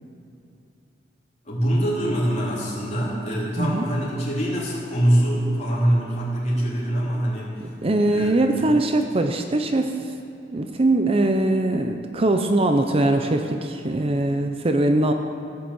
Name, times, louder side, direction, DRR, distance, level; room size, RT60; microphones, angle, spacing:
voice 1, 1.4-7.6 8.1-8.3 8.6-8.7, right 1 dB, 40° left, -6 dB, 3.5 m, -24 dB
voice 2, 7.6-9.9 10.5-15.1, right 2 dB, 30° right, 6 dB, 0.6 m, -21 dB
15.5 x 6.7 x 7.8 m, 2.7 s
head